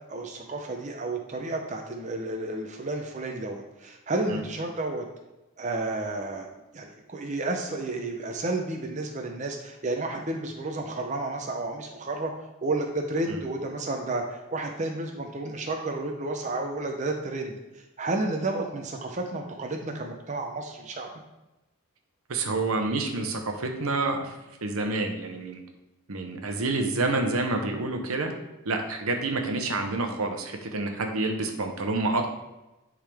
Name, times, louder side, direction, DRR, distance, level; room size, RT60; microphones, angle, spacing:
voice 1, 0.1-5.0 5.6-6.5 6.7-12.3 12.6-17.5 18.0-21.1, right 2 dB, 35° right, 2 dB, 0.6 m, -31 dB
voice 2, 22.3-24.3 24.6-25.6 26.1-28.3 28.6-32.3, right 2 dB, 80° right, 4 dB, 0.9 m, -28 dB
10.0 x 3.7 x 3.4 m, 1.0 s
head